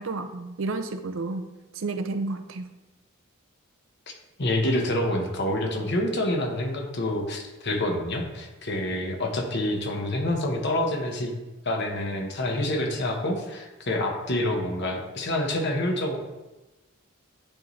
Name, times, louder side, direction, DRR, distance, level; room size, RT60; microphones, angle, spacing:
voice 1, 0.0-2.7, right 3 dB, 65° right, 8 dB, 0.6 m, -31 dB
voice 2, 4.4-11.3 11.6-16.2, left 1 dB, 55° left, 2 dB, 1.1 m, -27 dB
9.9 x 4.2 x 3.2 m, 1.1 s
head